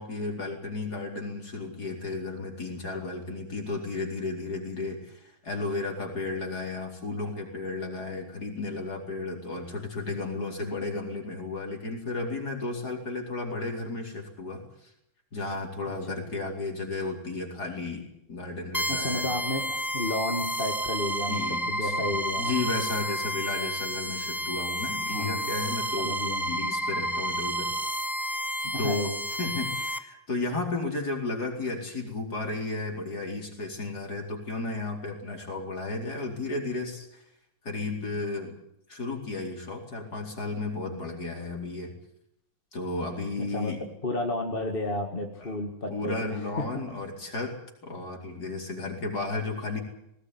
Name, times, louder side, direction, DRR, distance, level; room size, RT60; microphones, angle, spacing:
voice 1, 0.0-14.9 15.3-19.3 21.3-22.1 22.4-26.2 26.5-27.7 28.8-29.1 29.4-37.2 37.6-38.5 38.9-41.9 42.7-43.8 45.4-45.6 45.9-47.5 47.8-49.8, left 3 dB, 50° left, 1 dB, 5.0 m, -33 dB
voice 2, 15.9-16.2 18.9-21.4 21.8-22.5 23.6-23.7 25.1-25.5 26.0-26.6 28.6-29.1 43.4-43.7 44.0-46.8, left 2 dB, 25° left, 2 dB, 2.3 m, -32 dB
sound 1, 18.7-30.0, equal, ahead, 0.9 m, -31 dB
20.0 x 19.0 x 9.8 m, 0.79 s
omnidirectional pair, 2.2 m